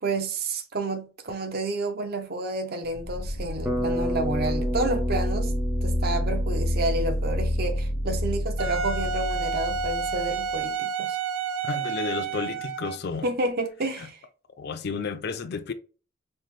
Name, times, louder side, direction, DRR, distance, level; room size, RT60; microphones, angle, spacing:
voice 1, 0.0-5.5 5.8-11.2 13.2-14.2, right 2 dB, 50° right, 0.7 m, -30 dB
sound 1, 2.8-10.6, equal, 85° left, 0.6 m, -28 dB
Bass guitar, 3.6-7.8, equal, 10° right, 0.5 m, -32 dB
Wind instrument woodwind instrument, 8.6-13.1, right 5 dB, 75° right, 0.4 m, -30 dB
voice 2, 11.6-13.3 14.0-14.1 14.6-15.7, left 5 dB, 50° left, 0.4 m, -32 dB
5.6 x 2.1 x 3.1 m
head